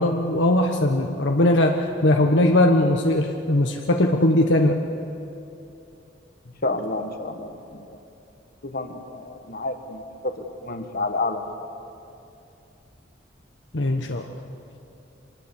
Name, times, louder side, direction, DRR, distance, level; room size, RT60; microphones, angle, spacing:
voice 1, 0.0-4.8 13.7-14.2, left 1 dB, 70° left, 2 dB, 1.2 m, -20 dB
voice 2, 6.4-7.9 8.6-11.5, left 2 dB, 50° left, 6 dB, 1.6 m, -30 dB
25.0 x 20.0 x 7.2 m, 2.8 s
head